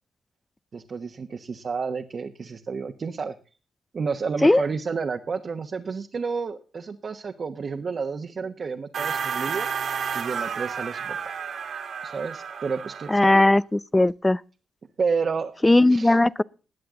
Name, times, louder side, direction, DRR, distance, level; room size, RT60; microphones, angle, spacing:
voice 1, 0.7-3.4 3.9-9.7 10.1-11.3 12.0-13.4 15.0-15.6 15.9-16.2, right 5 dB, 45° right, 1.3 m, -30 dB
sound 1, 8.9-13.5, right 6 dB, 65° right, 2.1 m, -31 dB
voice 2, 13.1-14.4 15.6-16.4, left 2 dB, 15° left, 0.5 m, -18 dB
20.0 x 7.9 x 3.8 m
cardioid pair, 85°, 0 cm